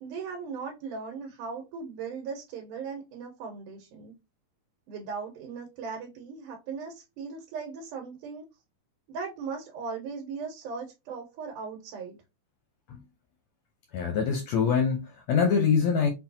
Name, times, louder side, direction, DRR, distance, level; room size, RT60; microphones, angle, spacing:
voice 1, 0.0-4.1 4.9-8.5 9.1-12.2, right 5 dB, 85° right, 2.5 m, -38 dB
voice 2, 13.9-16.1, left 6 dB, 75° left, 1.5 m, -24 dB
5.7 x 2.2 x 2.7 m
omnidirectional pair, 3.6 m